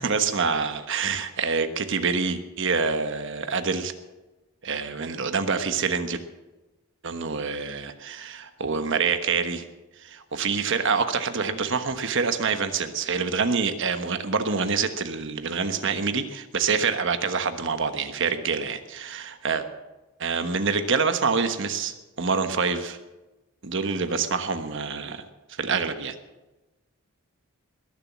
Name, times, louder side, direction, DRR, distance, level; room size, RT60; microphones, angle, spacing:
voice 1, 0.0-3.9 4.6-6.2 7.0-9.6 10.0-19.7 20.2-23.0 23.6-25.2 25.6-26.1, right 5 dB, 60° right, 8 dB, 1.2 m, -26 dB
20.5 x 7.2 x 7.4 m, 1.1 s
head